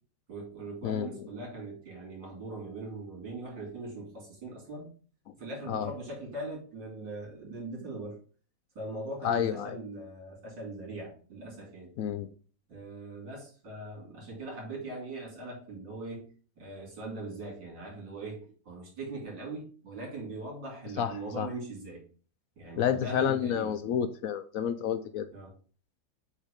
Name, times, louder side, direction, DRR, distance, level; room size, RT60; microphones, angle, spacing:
voice 1, 0.3-4.9 5.4-8.2 8.8-11.9 12.7-16.3 16.6-22.0 22.6-23.9 25.3-25.5, right 2 dB, 75° right, -3 dB, 3.9 m, -41 dB
voice 2, 9.2-9.7 12.0-12.3 21.0-21.1 21.4-21.5 22.8-25.3, left 9 dB, 75° left, 9 dB, 0.8 m, -29 dB
8.2 x 3.2 x 5.1 m, 0.40 s
omnidirectional pair, 2.0 m